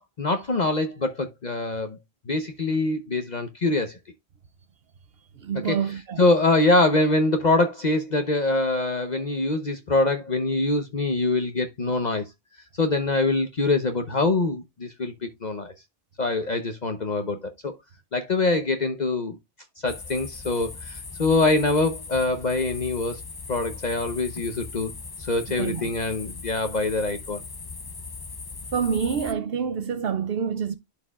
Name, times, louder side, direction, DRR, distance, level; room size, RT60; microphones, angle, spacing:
voice 1, 0.0-2.0 2.3-4.0 5.6-5.8 6.2-12.3 12.8-15.7 16.2-17.7 18.1-19.4 19.8-23.2 23.5-24.9 25.2-27.4, left 2 dB, 45° left, 1.0 m, -24 dB
voice 2, 5.4-6.2 25.5-25.9 28.7-30.7, right 7 dB, 70° right, 0.8 m, -27 dB
sound 1, 19.9-29.3, left 4 dB, 30° left, 0.5 m, -39 dB
11.5 x 4.7 x 2.3 m
omnidirectional pair, 1.1 m